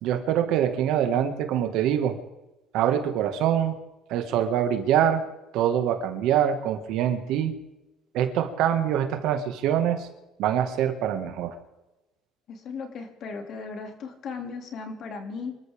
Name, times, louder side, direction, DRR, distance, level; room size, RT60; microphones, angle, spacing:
voice 1, 0.0-2.2 2.7-3.8 4.1-5.2 5.5-7.5 8.1-10.1 10.4-11.6, right 10 dB, 65° right, 7 dB, 1.9 m, -24 dB
voice 2, 12.5-15.5, left 5 dB, 45° left, 5 dB, 2.8 m, -36 dB
26.0 x 13.5 x 3.7 m, 1.0 s
cardioid pair, 145°, 0 cm